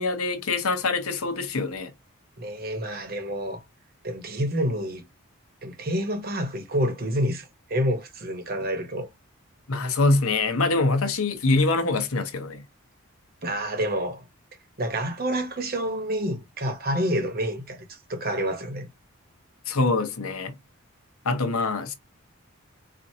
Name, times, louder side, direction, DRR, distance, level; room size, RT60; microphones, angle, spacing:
voice 1, 0.0-1.9 9.7-12.6 19.7-20.5 21.2-21.9, left 3 dB, 80° left, 0.8 m, -24 dB
voice 2, 2.4-3.6 4.0-5.0 5.6-9.1 13.4-14.3 14.8-18.9, equal, 40° right, 0.9 m, -28 dB
4.4 x 2.5 x 2.7 m
head